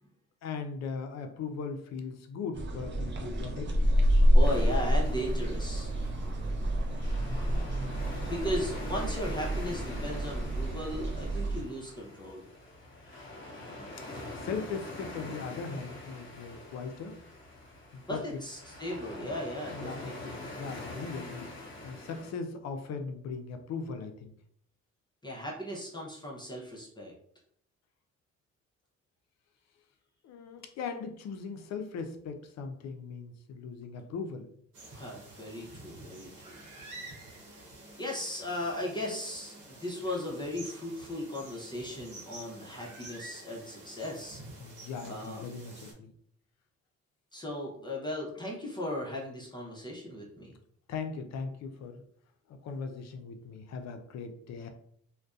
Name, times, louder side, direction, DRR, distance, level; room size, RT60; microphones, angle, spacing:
voice 1, 0.4-3.9 14.3-17.2 17.9-18.4 19.7-24.3 30.2-34.5 44.6-46.1 50.9-52.0 52.5-54.7, left 5 dB, 60° left, 6 dB, 0.5 m, -39 dB
sound 1, 2.5-11.6, equal, 40° right, 0.5 m, -28 dB
voice 2, 4.3-5.9 8.2-12.4 18.1-20.4 25.2-27.1 34.9-36.5 38.0-44.4 45.1-45.4 47.3-50.5, left 1 dB, 15° left, -4 dB, 0.6 m, -37 dB
sound 2, 4.4-22.3, left 2 dB, 40° left, 1.0 m, -45 dB
sound 3, 34.7-45.9, right 2 dB, 80° right, 0.9 m, -49 dB
2.5 x 2.1 x 2.3 m, 0.65 s
cardioid pair, 90°, 30 cm